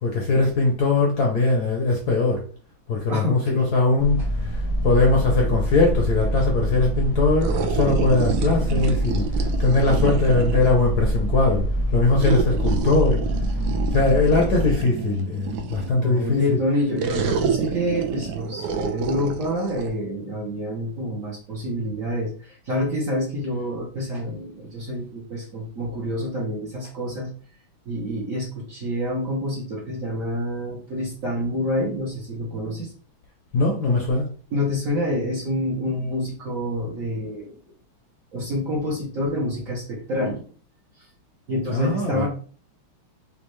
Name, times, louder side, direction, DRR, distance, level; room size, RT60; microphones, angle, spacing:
voice 1, 0.0-2.4 2.9-4.2 4.8-9.3 9.6-11.6 11.9-13.2 13.9-16.6 33.5-34.3 41.7-42.3, left 3 dB, 60° left, 0 dB, 1.1 m, -21 dB
voice 2, 3.1-3.6 16.0-27.3 27.9-32.9 34.5-37.6 38.3-40.4 41.5-42.3, left 1 dB, 50° right, -3 dB, 1.1 m, -27 dB
sound 1, 4.0-14.7, equal, 80° left, 1.7 m, -25 dB
sound 2, 7.4-10.8 12.2-16.0 17.0-19.9, right 6 dB, 75° right, 1.0 m, -28 dB
5.3 x 2.4 x 3.1 m, 0.41 s
omnidirectional pair, 2.4 m